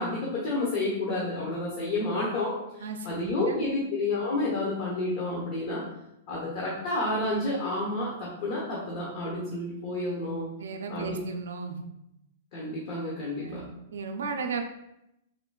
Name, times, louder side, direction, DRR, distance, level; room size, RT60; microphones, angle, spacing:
voice 1, 0.0-5.8 6.3-10.5 10.9-11.1 12.5-13.6, left 2 dB, 55° left, -5 dB, 0.8 m, -30 dB
voice 2, 2.8-3.6 10.6-11.8 13.4-13.7 13.9-14.6, right 5 dB, 80° right, 5 dB, 0.4 m, -35 dB
3.7 x 2.1 x 2.3 m, 0.83 s
hypercardioid pair, 125°, 0 cm